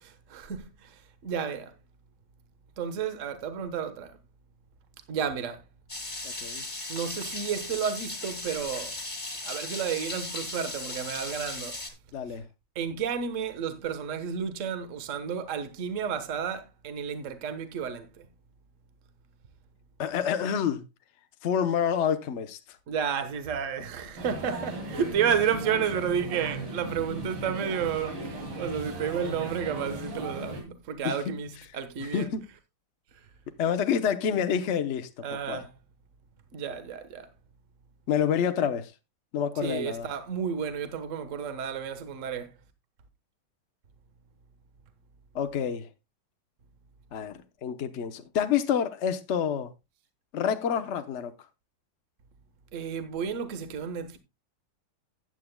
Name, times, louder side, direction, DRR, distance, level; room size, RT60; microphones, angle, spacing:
voice 1, 0.0-1.7 2.8-4.1 5.1-5.6 6.9-8.9 9.4-11.7 12.7-18.3 22.9-32.3 35.2-35.7 36.5-37.3 39.6-42.5 52.7-54.2, right 7 dB, 45° right, 1.4 m, -31 dB
sound 1, 5.9-11.9, left 2 dB, 15° left, 2.1 m, -37 dB
voice 2, 6.2-6.6 12.1-12.5 20.0-20.8 21.4-22.6 31.0-31.3 32.0-32.4 33.6-35.7 38.1-38.9 39.3-40.1 45.3-45.9 47.1-49.7 50.3-51.4, left 8 dB, 70° left, 0.6 m, -28 dB
sound 2, 24.2-30.6, right 1 dB, 70° right, 3.5 m, -37 dB
15.0 x 9.3 x 2.2 m
omnidirectional pair, 2.3 m